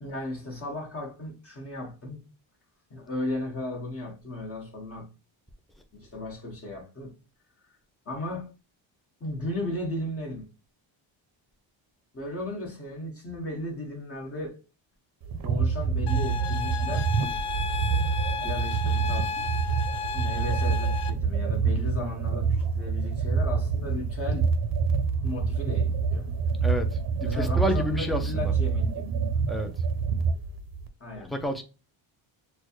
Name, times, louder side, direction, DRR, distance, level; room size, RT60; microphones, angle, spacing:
voice 1, 0.0-2.2 2.9-5.1 5.9-7.1 8.0-8.5 9.2-10.4 12.1-14.6 15.4-17.1 18.4-19.3 20.1-24.5 25.2-26.3 27.2-29.1 31.0-31.3, left 1 dB, 30° left, 1.6 m, -35 dB
sound 1, 15.2-30.9, right 5 dB, 50° right, 0.7 m, -27 dB
sound 2, 16.1-21.1, left 5 dB, 60° left, 0.5 m, -33 dB
voice 2, 26.6-28.5 29.5-29.7 31.2-31.6, equal, ahead, 0.4 m, -30 dB
6.4 x 2.3 x 3.0 m
cardioid pair, 165°, 47 cm